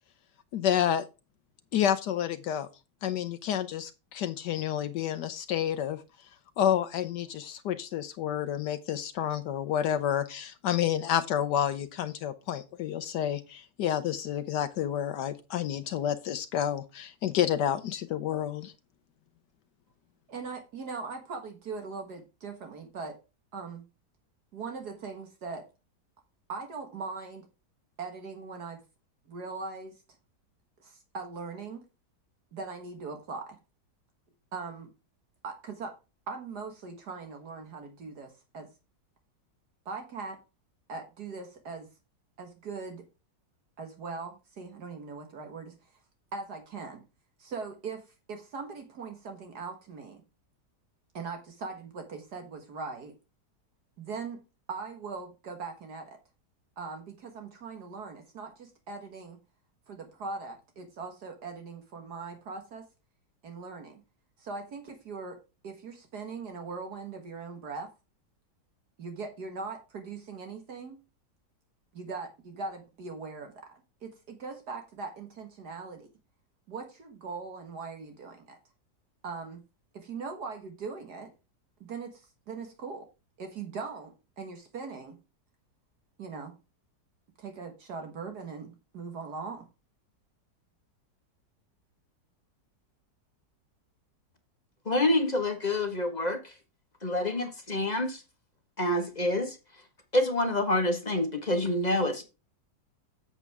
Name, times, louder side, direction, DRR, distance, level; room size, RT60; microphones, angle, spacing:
voice 1, 0.5-1.0 1.7-2.7 3.0-6.0 6.6-18.7, left 10 dB, 75° left, 1.3 m, -29 dB
voice 2, 20.3-23.2 23.5-23.8 24.5-25.7 26.5-27.5 28.0-28.8 29.3-30.0 30.8-31.8 32.5-33.6 34.5-34.9 35.4-35.9 36.3-38.7 39.9-40.4 40.9-41.9 42.4-43.0 43.8-45.7 46.3-47.0 47.4-50.2 51.1-53.1 54.0-54.4 54.7-56.2 56.8-59.4 59.9-62.8 63.4-64.0 64.4-65.4 65.6-67.9 69.0-71.0 71.9-76.1 76.7-78.6 79.2-79.6 79.9-81.3 81.8-83.1 83.4-85.2 86.2-86.5 87.4-89.7, right 4 dB, 65° right, 2.0 m, -40 dB
voice 3, 94.8-96.4 97.0-98.2 98.8-99.6 100.1-102.2, left 1 dB, 25° left, 1.3 m, -27 dB
8.2 x 7.3 x 3.5 m
omnidirectional pair, 1.9 m